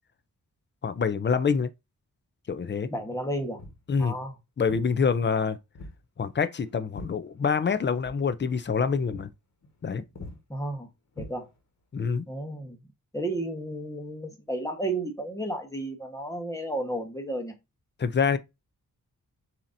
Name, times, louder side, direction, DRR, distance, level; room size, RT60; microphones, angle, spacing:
voice 1, 0.8-1.7 2.5-2.9 3.9-4.1 4.6-5.6 6.2-9.3 9.8-10.0 11.9-12.2 18.0-18.4, left 5 dB, 35° left, 0.4 m, -26 dB
voice 2, 2.9-3.6 4.0-4.3 10.5-10.9 11.2-11.5 12.3-12.8 13.1-17.5, right 1 dB, 10° left, 1.1 m, -32 dB
Walk footsteps, 3.6-3.9 4.7-4.9 5.7-6.0 6.3-7.7 8.0-8.2 8.6-8.8 9.1-9.3 9.6-9.9 10.2-10.4 11.1-11.8, left 2 dB, 55° left, 1.3 m, -43 dB
7.1 x 2.8 x 2.6 m
wide cardioid pair, 135°, 33 cm